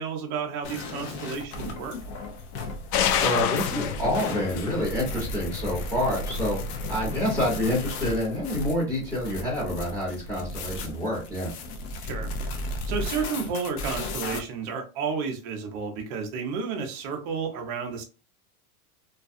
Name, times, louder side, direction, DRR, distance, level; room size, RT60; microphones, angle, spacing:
voice 1, 0.0-2.0 12.0-12.3 12.9-18.0, right 5 dB, 30° right, 0.5 m, -31 dB
sound 1, 0.6-14.4, left 1 dB, 45° left, 0.6 m, -34 dB
sound 2, 2.9-8.1, left 9 dB, 90° left, 0.5 m, -31 dB
voice 2, 3.2-6.6 6.9-11.5, left 1 dB, 5° left, 1.0 m, -28 dB
2.4 x 2.3 x 2.5 m
supercardioid pair, 150°, 45 cm